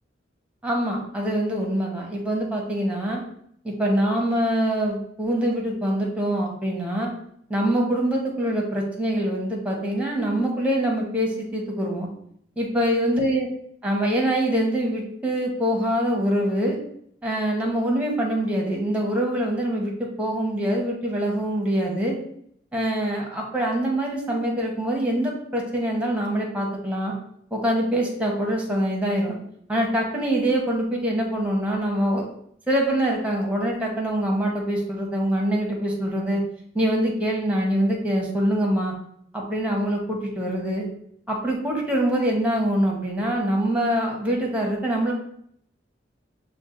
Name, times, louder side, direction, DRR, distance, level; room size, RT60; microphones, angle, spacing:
voice 1, 0.6-3.2 3.6-7.1 7.5-12.1 12.6-13.5 13.8-16.8 17.2-19.9 20.2-22.2 22.7-27.1 27.5-29.4 29.7-32.3 32.7-36.4 36.7-38.9 39.3-40.9 41.3-45.1, right 1 dB, 5° right, -1 dB, 1.0 m, -24 dB
6.0 x 2.3 x 3.8 m, 0.68 s
head